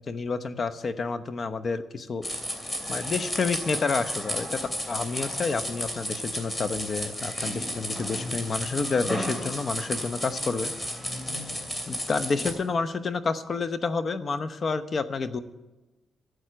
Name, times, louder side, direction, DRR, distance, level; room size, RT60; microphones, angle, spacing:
voice 1, 0.1-2.3 2.9-4.6 4.9-10.7 11.9-15.4, left 4 dB, 45° left, 11 dB, 0.9 m, -29 dB
sound 1, 2.2-12.5, equal, 15° left, 2.8 m, -33 dB
12.5 x 8.0 x 7.6 m, 1.1 s
cardioid pair, 80°, 0 cm